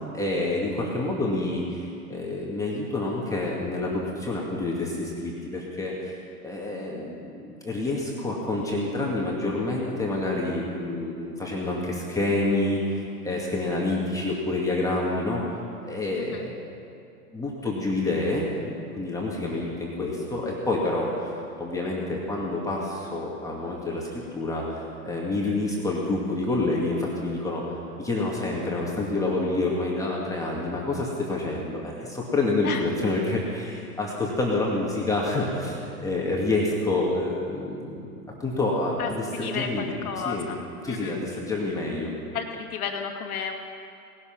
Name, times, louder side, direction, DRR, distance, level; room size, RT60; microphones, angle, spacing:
voice 1, 0.1-15.4 15.8-16.7 17.3-21.3 21.6-27.6 28.0-38.1 38.4-40.5 40.8-42.1, left 2 dB, 5° left, -4 dB, 2.2 m, -28 dB
voice 2, 39.0-40.6 40.8-41.2 42.3-43.5, left 7 dB, 70° left, 4 dB, 2.2 m, -32 dB
18.5 x 12.0 x 6.0 m, 2.5 s
hypercardioid pair, 125°, 46 cm